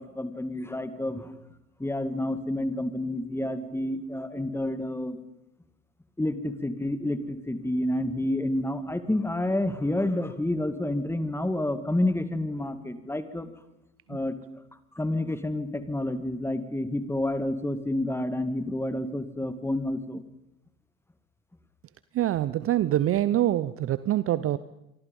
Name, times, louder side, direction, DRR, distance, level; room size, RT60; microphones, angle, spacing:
voice 1, 0.0-1.3 1.8-5.2 6.2-13.5 14.1-14.4 14.9-20.2, left 1 dB, 5° left, 11 dB, 2.1 m, -29 dB
voice 2, 22.1-24.6, right 13 dB, 30° right, 16 dB, 0.8 m, -25 dB
27.5 x 24.0 x 5.5 m, 0.85 s
figure-of-eight pair, 75°, 42 cm